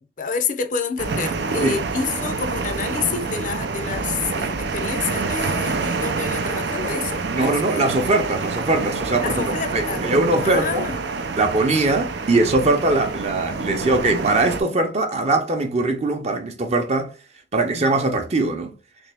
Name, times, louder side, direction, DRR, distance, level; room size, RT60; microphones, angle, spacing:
voice 1, 0.0-7.9 9.2-10.0 10.4-11.0 17.7-17.9, left 6 dB, 45° left, 0.5 m, -28 dB
sound 1, 1.0-14.6, right 4 dB, 75° right, 0.5 m, -27 dB
voice 2, 7.2-9.4 9.7-10.9 11.4-17.1 17.5-18.7, right 2 dB, 40° right, 0.7 m, -21 dB
3.4 x 3.0 x 3.4 m
head